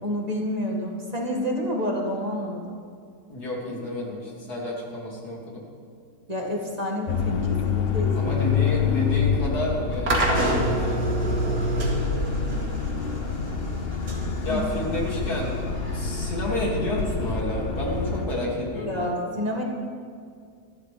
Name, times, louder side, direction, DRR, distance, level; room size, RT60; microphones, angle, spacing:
voice 1, 0.0-2.6 6.3-8.3 14.5-14.6 18.9-19.6, left 1 dB, 25° right, -1 dB, 2.1 m, -28 dB
voice 2, 3.3-5.6 8.1-11.2 14.4-15.6 15.9-19.1, left 1 dB, 70° left, -3 dB, 3.2 m, -30 dB
sound 1, 7.1-18.3, left 5 dB, 50° left, 0.8 m, -27 dB
sound 2, 10.1-17.1, right 1 dB, 80° right, 2.8 m, -29 dB
26.5 x 12.0 x 3.5 m, 2.2 s
omnidirectional pair, 1.8 m